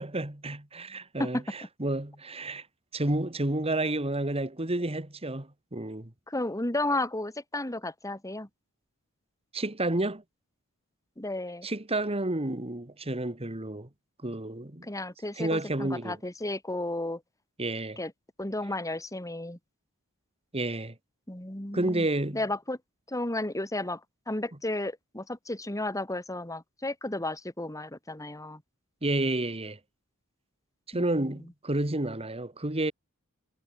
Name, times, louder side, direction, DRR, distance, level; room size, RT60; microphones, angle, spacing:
voice 1, 0.0-1.4 1.8-2.6 2.9-6.1 9.5-10.2 11.6-13.9 14.2-14.9 15.4-16.2 17.6-18.0 20.5-20.9 21.7-22.4 29.0-29.8 30.9-32.9, right 2 dB, 25° right, 2.3 m, -30 dB
voice 2, 6.3-8.5 11.2-11.7 14.8-17.2 18.0-18.1 18.4-19.6 21.3-22.1 22.3-22.8 23.1-24.0 24.3-28.6 30.9-31.1, left 2 dB, 15° left, 2.7 m, -33 dB
head